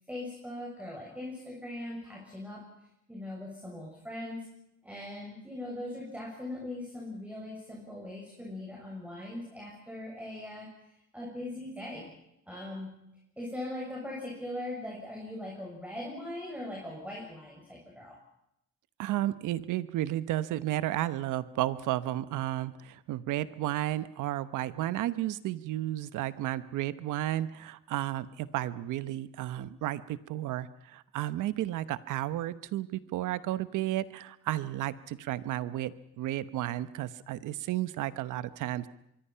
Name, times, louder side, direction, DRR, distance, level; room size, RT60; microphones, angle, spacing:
voice 1, 0.1-2.6 3.1-4.5 4.8-12.1 12.5-13.0 13.4-18.2, left 1 dB, 5° right, -2 dB, 6.8 m, -40 dB
voice 2, 19.0-38.9, right 14 dB, 90° right, 14 dB, 1.0 m, -33 dB
24.5 x 23.5 x 5.7 m, 0.81 s
cardioid pair, 90°, 30 cm